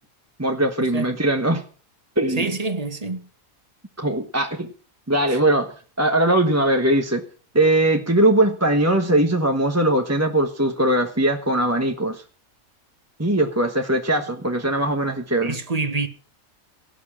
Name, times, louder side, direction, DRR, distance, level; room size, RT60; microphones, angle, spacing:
voice 1, 0.4-1.6 2.2-2.5 4.0-4.7 5.1-7.2 7.5-12.2 13.2-15.6, right 1 dB, 10° right, 1.1 m, -20 dB
voice 2, 2.4-3.3 5.3-5.4 15.4-16.1, right 3 dB, 30° right, 1.7 m, -26 dB
17.5 x 7.3 x 8.7 m
omnidirectional pair, 1.5 m